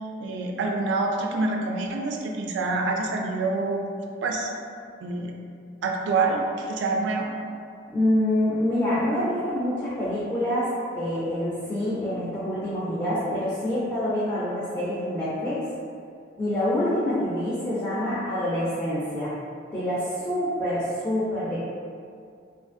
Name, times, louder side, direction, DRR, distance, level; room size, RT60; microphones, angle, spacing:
voice 1, 0.2-3.9 4.2-4.5 5.0-5.3 5.8-7.3, right 3 dB, 75° right, 2 dB, 0.3 m, -26 dB
voice 2, 7.9-15.6 16.4-19.3 19.7-21.6, left 1 dB, 15° left, -10 dB, 0.4 m, -26 dB
2.7 x 2.4 x 2.5 m, 2.3 s
head